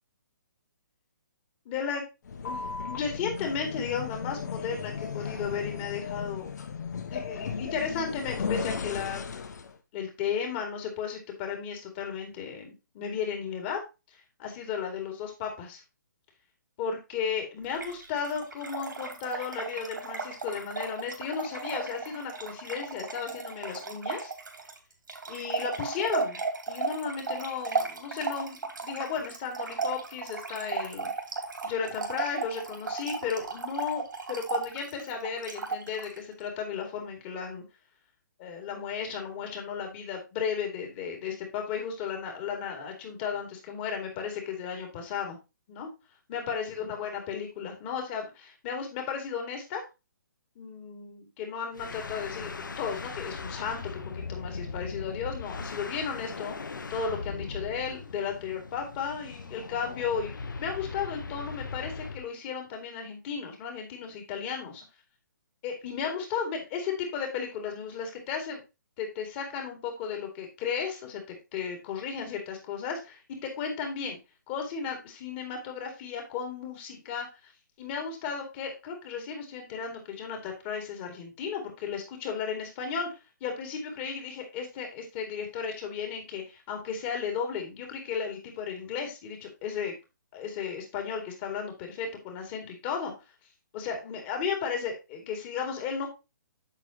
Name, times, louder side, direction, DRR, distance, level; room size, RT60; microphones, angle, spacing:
voice 1, 1.6-2.0 2.4-6.5 7.1-9.2 9.9-13.8 14.4-15.8 16.8-24.3 25.3-26.4 26.7-31.1 31.6-37.6 38.4-45.4 45.7-45.9 46.3-49.8 50.6-60.3 60.6-64.8 65.6-68.6 69.0-71.2 71.5-74.2 74.5-77.3 77.8-83.1 83.4-89.9 90.3-93.1 93.7-96.1, left 6 dB, 30° left, 3 dB, 2.6 m, -34 dB
sound 1, 2.2-9.7, left 6 dB, 60° left, 1.2 m, -35 dB
Trickle dribble / Fill (with liquid), 17.7-36.2, right 4 dB, 80° right, 2.9 m, -35 dB
sound 2, 51.7-62.3, left 4 dB, 80° left, 1.0 m, -39 dB
8.3 x 6.7 x 3.0 m, 0.26 s
hypercardioid pair, 145°, 10 cm